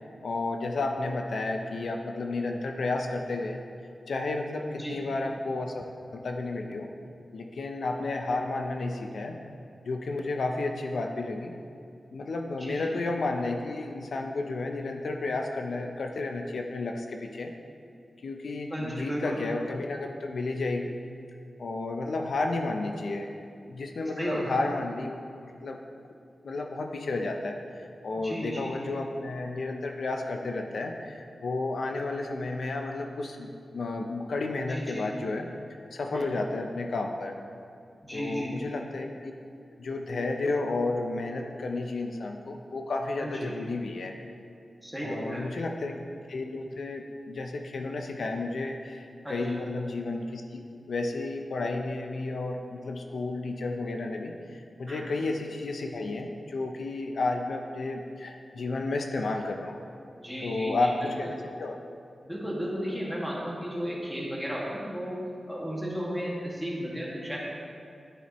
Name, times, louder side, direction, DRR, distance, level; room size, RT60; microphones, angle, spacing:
voice 1, 0.2-3.6 4.1-5.8 6.1-6.9 7.3-9.4 9.8-11.5 12.1-17.5 18.2-20.9 21.6-23.3 23.7-25.2 25.4-25.8 26.4-35.5 35.9-37.4 38.1-39.3 39.8-44.1 45.0-46.0 46.3-59.8 60.4-61.8, left 2 dB, 80° left, 3 dB, 0.6 m, -32 dB
voice 2, 4.6-5.0 12.5-12.9 18.7-19.4 24.2-24.6 28.1-29.0 34.7-35.1 36.1-36.3 38.0-38.6 43.2-43.5 44.8-45.5 49.2-49.4 54.9-55.1 60.1-61.1 62.2-65.2 65.5-67.4, equal, ahead, -5 dB, 2.0 m, -34 dB
10.0 x 9.6 x 3.1 m, 2.4 s
wide cardioid pair, 110°, 0 cm